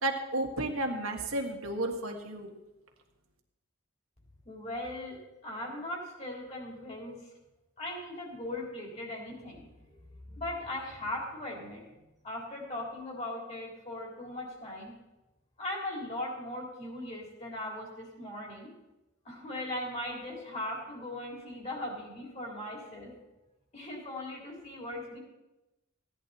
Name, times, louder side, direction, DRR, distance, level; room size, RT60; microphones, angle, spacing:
voice 1, 0.0-2.5, right 1 dB, 85° right, 2 dB, 1.7 m, -32 dB
voice 2, 4.5-5.2 5.4-7.2 7.8-10.0 10.3-11.8 12.2-14.9 15.6-18.7 19.3-23.1 23.7-25.2, left 1 dB, 35° left, -1 dB, 3.5 m, -39 dB
16.0 x 10.5 x 4.3 m, 1.0 s
head